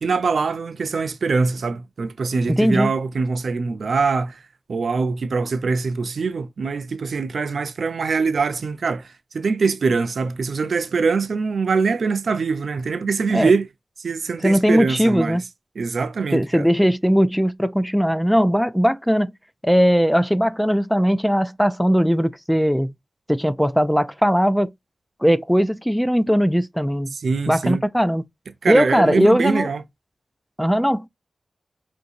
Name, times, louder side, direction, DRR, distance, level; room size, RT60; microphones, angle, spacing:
voice 1, 0.0-4.4 4.7-13.7 14.0-15.4 15.8-16.7 27.1-27.8 28.6-29.8, right 4 dB, 85° right, 0.5 m, -23 dB
voice 2, 2.5-2.9 13.3-13.5 14.4-15.4 16.3-19.3 19.6-22.9 23.3-24.7 25.2-27.1 27.5-28.2 28.7-29.7 30.6-31.1, equal, ahead, 0.4 m, -19 dB
5.4 x 2.6 x 2.6 m
wide cardioid pair, 80°, 0 cm